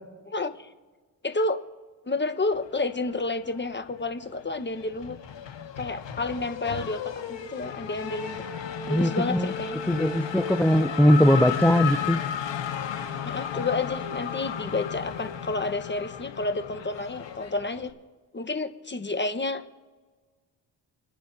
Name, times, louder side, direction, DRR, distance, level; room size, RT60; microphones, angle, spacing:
voice 1, 0.3-0.7 1.2-1.6 2.1-5.2 5.8-8.4 8.9-9.8 13.2-17.9 18.3-19.6, left 3 dB, 20° left, 9 dB, 1.3 m, -30 dB
Race car auto racing / Accelerating revving vroom, 2.9-3.9 4.2-17.9, left 7 dB, 60° left, 1.8 m, -34 dB
voice 2, 8.9-9.5 9.9-12.2, equal, 5° left, 8 dB, 0.6 m, -20 dB
28.5 x 10.0 x 2.8 m, 1.4 s
hypercardioid pair, 45°, 49 cm